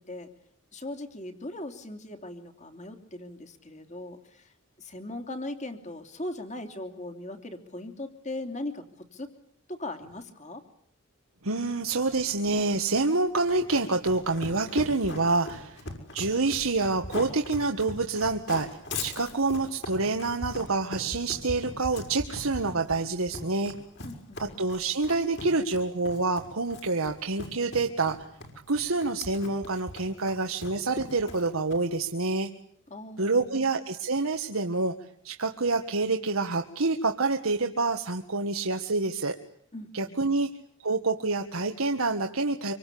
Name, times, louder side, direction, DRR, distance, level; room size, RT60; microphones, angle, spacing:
voice 1, 0.7-4.4 4.8-8.8 9.1-9.3 9.7-10.6 24.0-24.6 32.9-33.7 39.7-40.1, left 1 dB, 35° left, 7 dB, 3.1 m, -39 dB
voice 2, 11.4-15.8 16.1-18.7 19.0-23.7 24.4-28.2 28.7-32.5 33.2-34.9 35.2-39.3 39.9-40.5 40.8-42.7, right 3 dB, 80° right, 4 dB, 1.7 m, -27 dB
Run, 13.3-32.0, left 2 dB, 55° left, 5.7 m, -40 dB
26.5 x 25.0 x 8.6 m, 0.65 s
head